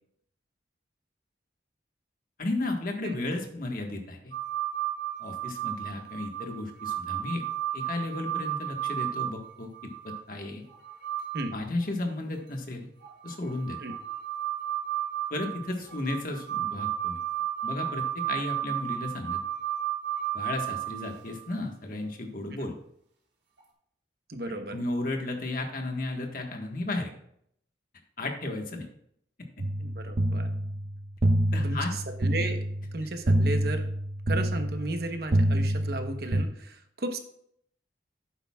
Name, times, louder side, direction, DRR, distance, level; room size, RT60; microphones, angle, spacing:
voice 1, 2.4-4.3 5.2-7.4 7.7-10.6 11.5-12.9 13.2-13.8 15.3-17.2 17.6-19.4 20.3-22.7 24.5-27.1 28.2-28.9 29.4-29.6 31.5-32.0 33.0-33.1, left 2 dB, 50° left, 2 dB, 1.5 m, -34 dB
sound 1, 4.3-10.2 10.7-11.5 11.8-11.9 13.0-21.5 23.6-23.7, right 12 dB, 75° right, 3.7 m, -33 dB
voice 2, 24.3-24.7 29.8-30.5 31.6-32.6 32.9-33.8 34.3-37.2, right 2 dB, 60° right, 5 dB, 1.1 m, -34 dB
sound 2, 29.6-36.4, right 1 dB, 35° right, 0.6 m, -27 dB
11.5 x 9.0 x 2.4 m, 0.69 s
head